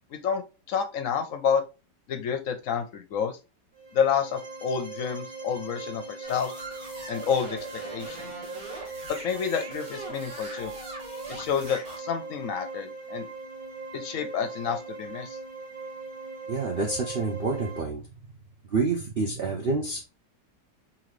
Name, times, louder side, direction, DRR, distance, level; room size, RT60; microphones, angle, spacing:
voice 1, 0.1-0.4 0.7-1.6 2.1-3.3 3.9-6.5 7.1-7.6 7.9-8.3 9.2-10.7 11.3-13.3 13.9-15.4, left 7 dB, 65° left, 6 dB, 0.9 m, -29 dB
sound 1, 3.7-17.8, right 3 dB, 5° right, 1.1 m, -40 dB
sound 2, 6.2-12.0, right 2 dB, 85° right, 1.9 m, -41 dB
voice 2, 16.5-18.0 18.7-20.0, right 3 dB, 70° right, 0 dB, 0.5 m, -28 dB
3.8 x 2.9 x 3.1 m, 0.29 s
omnidirectional pair, 1.9 m